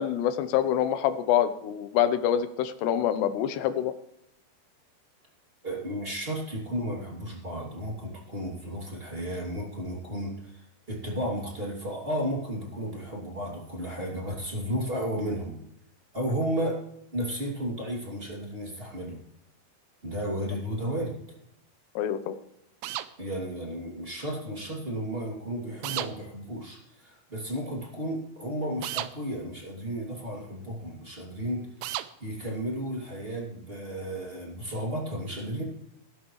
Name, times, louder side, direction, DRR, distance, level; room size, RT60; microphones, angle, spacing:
voice 1, 0.0-3.9 22.0-22.3, left 10 dB, 80° left, 11 dB, 2.9 m, -26 dB
voice 2, 5.6-15.6 16.1-16.8 17.1-19.2 20.0-21.2 23.2-31.7 32.2-35.6, equal, 20° right, -2 dB, 2.0 m, -33 dB
sound 1, 22.8-23.1 25.8-26.1 28.8-29.1 31.8-32.1, right 14 dB, 80° right, 2.7 m, -32 dB
19.5 x 12.0 x 3.2 m, 0.77 s
omnidirectional pair, 5.1 m